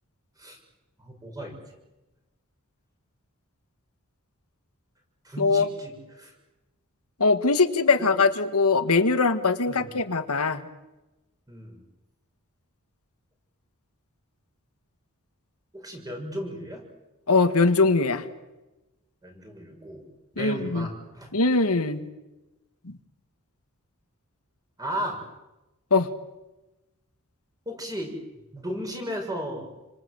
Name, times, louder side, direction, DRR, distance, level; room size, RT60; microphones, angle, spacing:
voice 1, 1.0-1.5 5.2-6.3 8.0-8.1 9.7-9.9 11.5-11.8 15.7-16.8 19.2-20.0 20.3-21.3 24.8-25.2 27.6-28.1 28.5-29.7, equal, 15° right, 2 dB, 6.6 m, -35 dB
voice 2, 5.4-5.7 7.2-10.7 17.3-18.2 20.4-20.9 21.3-22.1 22.8-22.9 25.9-26.1, left 4 dB, 80° left, 8 dB, 1.8 m, -22 dB
28.0 x 25.5 x 7.9 m, 1.0 s
head